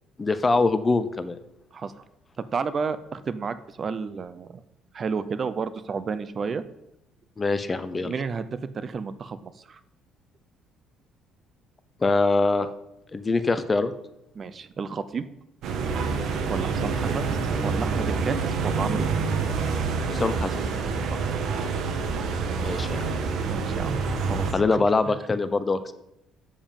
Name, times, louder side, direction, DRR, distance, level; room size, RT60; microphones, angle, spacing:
voice 1, 0.2-1.4 7.4-8.1 12.0-12.7 13.1-13.9 20.1-20.5 22.6-23.0 24.5-25.9, left 3 dB, 20° left, 12 dB, 0.6 m, -23 dB
voice 2, 2.4-4.6 4.9-6.6 8.0-9.8 14.4-15.2 16.5-17.3 17.6-18.4 18.6-19.1 21.1-21.3 23.5-23.9 24.2-25.1, right 5 dB, 35° right, 14 dB, 0.4 m, -31 dB
sound 1, 15.6-24.5, right 4 dB, 60° right, 1.2 m, -27 dB
7.2 x 7.1 x 5.3 m, 0.84 s
cardioid pair, 130°, 0 cm